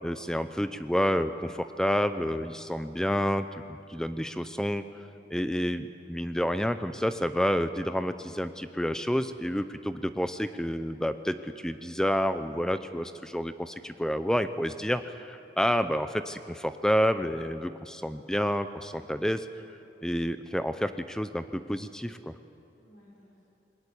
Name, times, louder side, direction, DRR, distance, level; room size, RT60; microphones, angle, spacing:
voice 1, 0.0-4.8 5.3-19.5 20.0-22.3, equal, 5° left, 10 dB, 0.6 m, -29 dB
voice 2, 4.3-5.4 22.8-23.4, left 1 dB, 65° left, -8 dB, 5.8 m, -60 dB
21.5 x 17.5 x 9.9 m, 2.6 s
head